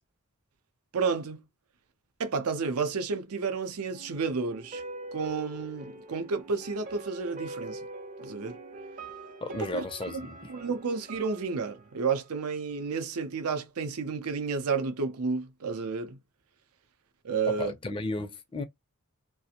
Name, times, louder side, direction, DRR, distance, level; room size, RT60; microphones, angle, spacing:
voice 1, 0.9-1.4 2.2-4.8 5.1-7.8 8.2-8.6 9.7-10.2 10.5-16.2 17.2-17.7, right 5 dB, 85° right, 0.6 m, -31 dB
sound 1, 3.9-12.9 13.2-13.3, right 2 dB, 35° right, 0.5 m, -44 dB
voice 2, 9.4-10.5 17.5-18.6, left 2 dB, 25° left, 0.4 m, -34 dB
2.4 x 2.0 x 2.8 m
head